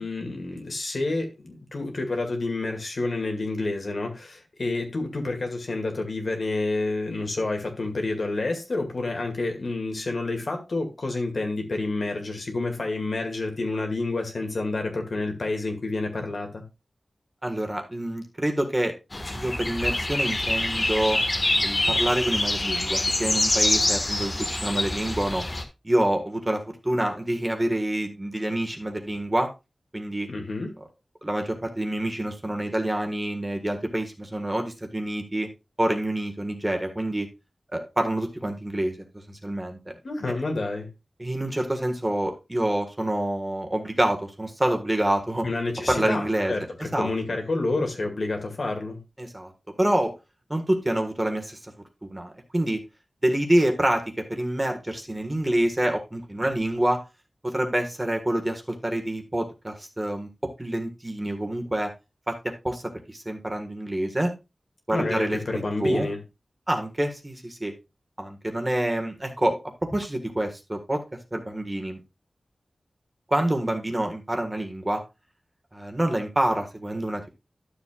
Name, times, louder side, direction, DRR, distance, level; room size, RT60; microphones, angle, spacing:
voice 1, 0.0-16.6 30.3-30.7 40.0-40.9 45.4-49.0 64.9-66.2, left 2 dB, 70° left, 2.2 m, -29 dB
voice 2, 17.4-18.9 19.3-21.2 21.6-25.4 25.8-29.5 29.9-30.3 31.2-35.5 35.8-37.3 37.7-38.9 39.3-39.9 41.2-45.5 45.9-46.5 46.9-47.1 49.2-49.5 49.8-50.1 50.5-51.6 52.0-52.8 53.2-54.0 54.3-57.0 57.4-61.9 62.3-62.8 63.1-64.3 64.9-66.1 66.7-67.7 68.2-69.6 69.9-71.0 71.3-72.0 73.3-75.0 75.7-77.3, right 1 dB, 20° right, 1.6 m, -27 dB
sound 1, 19.1-25.6, left 1 dB, 40° left, 1.6 m, -25 dB
12.0 x 7.2 x 2.4 m
wide cardioid pair, 85°, 0 cm